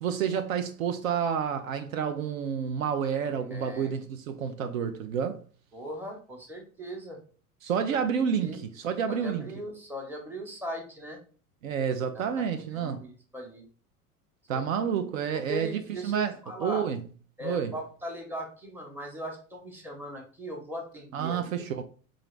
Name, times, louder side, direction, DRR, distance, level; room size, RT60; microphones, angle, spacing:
voice 1, 0.0-5.4 7.6-9.5 11.6-13.0 14.5-16.3 16.6-17.0 17.4-17.7 21.1-21.8, right 7 dB, 60° right, 0.5 m, -29 dB
voice 2, 3.1-3.9 5.7-7.2 8.4-8.6 9.1-11.2 12.1-13.7 14.5-14.7 15.5-16.9 17.4-21.6, equal, 5° right, 0.8 m, -39 dB
3.8 x 2.5 x 3.1 m
figure-of-eight pair, 80°, 45 cm